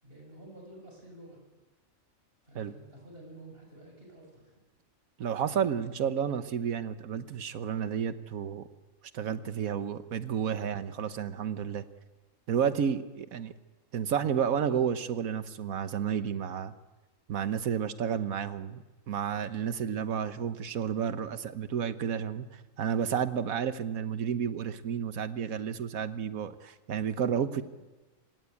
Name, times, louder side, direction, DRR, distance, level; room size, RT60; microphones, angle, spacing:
voice 1, 0.0-1.4 2.4-4.5 27.5-27.6, right 1 dB, 45° right, 0 dB, 7.8 m, -50 dB
voice 2, 5.2-8.7 9.1-11.8 12.5-13.5 13.9-16.7 17.3-22.5 22.8-27.6, right 8 dB, 90° right, 12 dB, 1.5 m, -31 dB
25.5 x 18.5 x 8.4 m, 1.2 s
omnidirectional pair, 1.4 m